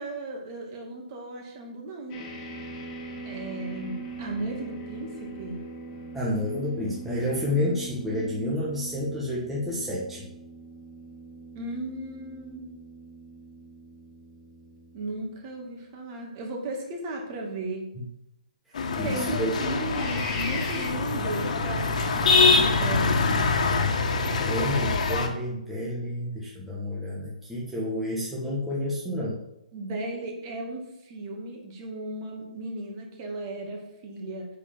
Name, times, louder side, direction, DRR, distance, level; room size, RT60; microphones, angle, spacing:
voice 1, 0.0-2.2 3.2-5.6 11.5-12.7 14.9-17.9 19.0-23.3 29.7-34.5, right 2 dB, 25° right, 1 dB, 2.5 m, -35 dB
sound 1, 2.1-15.2 19.9-20.9, right 1 dB, 20° left, 2.3 m, -40 dB
voice 2, 6.1-10.3 18.0-18.1 19.0-19.5 24.2-29.4, left 1 dB, 5° right, -7 dB, 1.5 m, -30 dB
sound 2, 18.8-25.3, left 3 dB, 60° left, 2.1 m, -24 dB
8.3 x 6.8 x 7.2 m, 0.83 s
hypercardioid pair, 165°, 4 cm